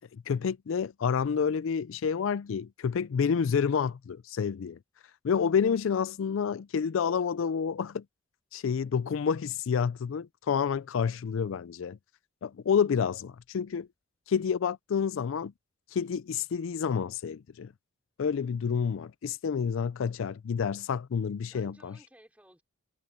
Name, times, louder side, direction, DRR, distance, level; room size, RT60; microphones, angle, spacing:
voice 1, 0.1-4.8 5.2-8.0 8.5-12.0 12.4-13.9 14.3-15.5 15.9-17.7 18.2-21.9, left 6 dB, 75° left, 0.4 m, -29 dB
voice 2, 11.1-11.5 21.5-22.6, equal, 5° right, 4.1 m, -57 dB
head